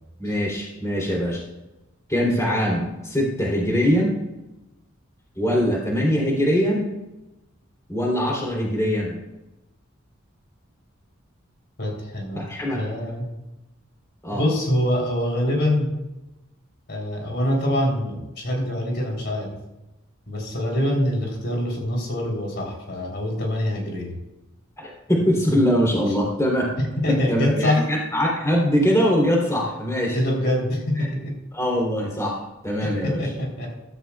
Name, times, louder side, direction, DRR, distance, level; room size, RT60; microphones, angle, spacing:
voice 1, 0.2-1.4 2.1-4.1 5.4-6.9 7.9-9.1 12.3-12.8 14.2-14.4 24.8-26.7 27.1-30.2 31.5-33.2, equal, 15° left, -3 dB, 3.3 m, -22 dB
voice 2, 11.8-13.3 14.3-16.0 16.9-19.6 20.3-24.2 26.8-27.9 30.1-31.3 32.8-33.7, left 1 dB, 55° left, -1 dB, 3.6 m, -25 dB
15.5 x 14.0 x 2.4 m, 0.98 s
head